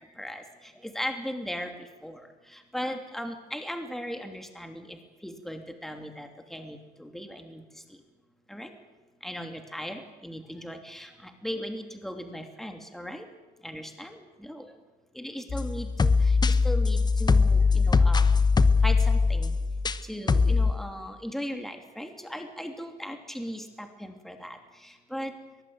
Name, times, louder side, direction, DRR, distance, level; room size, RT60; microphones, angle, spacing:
voice 1, 0.8-1.7 2.0-2.2 2.5-5.0 5.2-7.6 8.5-8.7 9.2-13.2 13.6-14.6 15.1-16.4 16.6-18.4 18.8-19.5 20.0-25.3, equal, ahead, 5 dB, 2.9 m, -37 dB
sound 1, 15.5-20.0 20.3-20.7, left 4 dB, 25° left, 1.1 m, -21 dB
23.0 x 19.5 x 8.9 m, 1.2 s
cardioid pair, 110°, 17 cm